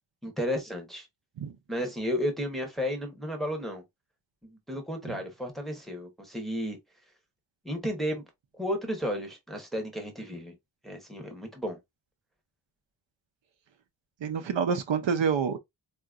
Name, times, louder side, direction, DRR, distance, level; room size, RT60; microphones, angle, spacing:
voice 1, 0.2-1.1 1.7-3.8 4.4-6.8 7.6-8.2 8.6-10.5 10.8-11.8, equal, ahead, 0.7 m, -33 dB
voice 2, 14.2-15.6, right 6 dB, 70° right, 0.6 m, -27 dB
3.8 x 2.5 x 2.3 m
wide cardioid pair, 175°, 46 cm